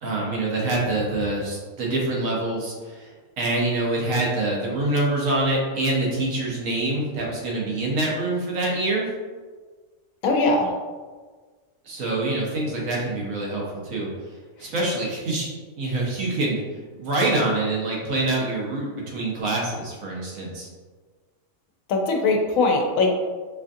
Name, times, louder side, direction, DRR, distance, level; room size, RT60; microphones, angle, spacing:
voice 1, 0.0-9.1 11.8-14.1 14.6-15.5 15.8-16.6 17.0-20.7, right 2 dB, 80° right, -3 dB, 1.3 m, -25 dB
voice 2, 10.2-10.7 21.9-23.1, left 3 dB, 85° left, 1 dB, 1.1 m, -20 dB
4.9 x 2.5 x 2.6 m, 1.4 s
omnidirectional pair, 1.4 m